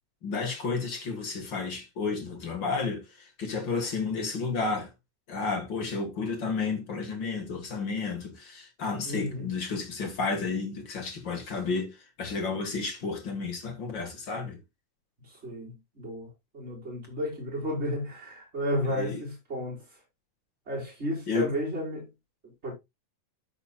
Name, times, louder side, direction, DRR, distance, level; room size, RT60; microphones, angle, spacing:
voice 1, 0.2-4.9 5.3-14.6 18.9-19.2 21.3-21.5, left 4 dB, 45° left, 1.8 m, -32 dB
voice 2, 9.0-9.5 15.2-16.3 16.5-19.8 20.7-22.1 22.4-22.7, equal, 20° right, 5.0 m, -33 dB
13.5 x 5.7 x 2.3 m
omnidirectional pair, 3.8 m